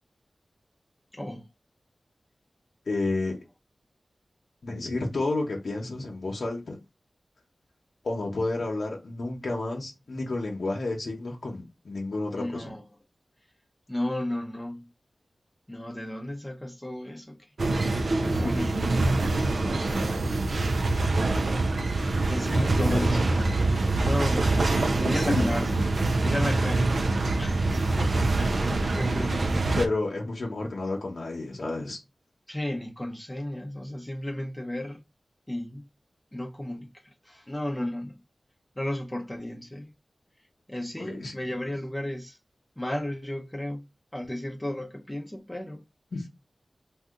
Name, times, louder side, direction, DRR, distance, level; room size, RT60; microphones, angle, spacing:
voice 1, 1.1-1.5 12.3-12.8 13.9-14.9 15.7-19.1 19.6-20.2 22.3-24.6 24.9-25.9 26.2-29.8 32.5-35.0 35.5-35.9 36.3-38.2 38.8-39.9 40.7-42.4 42.8-43.9 44.1-45.8, left 1 dB, 15° left, 0.6 m, -34 dB
voice 2, 2.9-3.4 4.6-6.8 8.0-12.6 18.1-18.6 22.5-23.1 25.1-25.5 28.7-28.8 29.3-29.4 29.7-32.0 41.0-41.4 46.1-46.3, left 2 dB, 75° left, 0.9 m, -31 dB
sound 1, 17.6-29.9, right 2 dB, 70° right, 0.4 m, -25 dB
2.7 x 2.3 x 3.6 m
wide cardioid pair, 70°, 0 cm